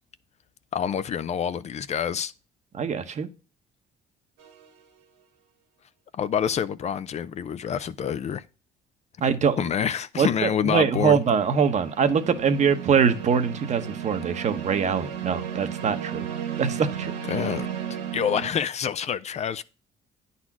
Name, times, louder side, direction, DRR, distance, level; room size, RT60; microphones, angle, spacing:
voice 1, 0.7-2.3 6.1-8.4 9.6-11.2 17.3-17.7 18.1-19.6, left 8 dB, 40° left, 0.5 m, -27 dB
voice 2, 2.7-3.3 9.2-9.6 10.2-16.3 16.6-17.1, right 6 dB, 45° right, 1.1 m, -23 dB
sound 1, 4.4-4.8 10.7-18.5, right 9 dB, 90° right, 1.7 m, -34 dB
9.6 x 4.2 x 6.0 m
cardioid pair, 110°, 17 cm